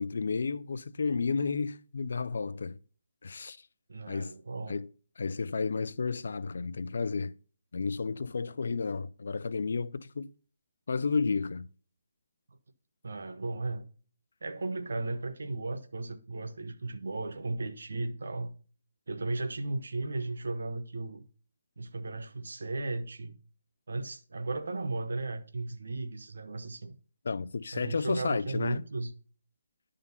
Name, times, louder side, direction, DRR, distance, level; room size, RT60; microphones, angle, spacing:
voice 1, 0.0-2.8 3.2-3.6 4.1-4.3 4.7-4.9 5.2-7.3 7.7-10.3 10.9-11.7 27.3-28.8, left 4 dB, 65° left, 0.4 m, -32 dB
voice 2, 3.9-4.8 13.0-13.8 14.4-18.5 19.1-21.2 21.8-23.4 23.9-26.9 27.7-29.1, right 2 dB, 75° right, 0.9 m, -35 dB
11.0 x 3.8 x 5.5 m
hypercardioid pair, 165°, 0 cm